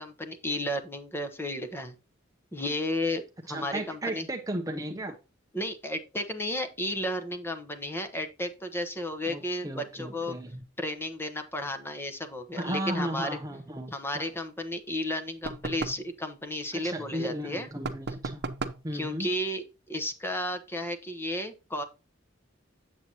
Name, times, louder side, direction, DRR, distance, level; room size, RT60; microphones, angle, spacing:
voice 1, 0.0-1.9 2.5-4.3 5.5-10.4 10.8-13.3 13.9-17.7 18.9-21.8, left 1 dB, 10° left, 1.0 m, -33 dB
voice 2, 3.5-5.2 9.3-10.6 12.6-14.3 16.7-18.4 18.8-19.3, right 1 dB, 15° right, 0.6 m, -35 dB
sound 1, 15.4-16.1 17.8-18.9, right 3 dB, 55° right, 0.7 m, -35 dB
7.9 x 7.5 x 2.8 m
head